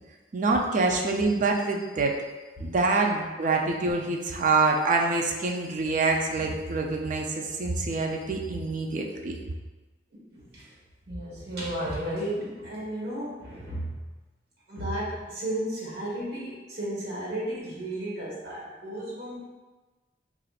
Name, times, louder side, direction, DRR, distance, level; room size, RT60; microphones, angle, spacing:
voice 1, 0.3-2.1 2.6-9.4, right 3 dB, 45° right, 1 dB, 0.4 m, -26 dB
voice 2, 10.1-10.7 11.1-13.9 14.7-19.4, right 1 dB, 65° right, -6 dB, 1.3 m, -33 dB
4.9 x 2.4 x 2.4 m, 1.2 s
head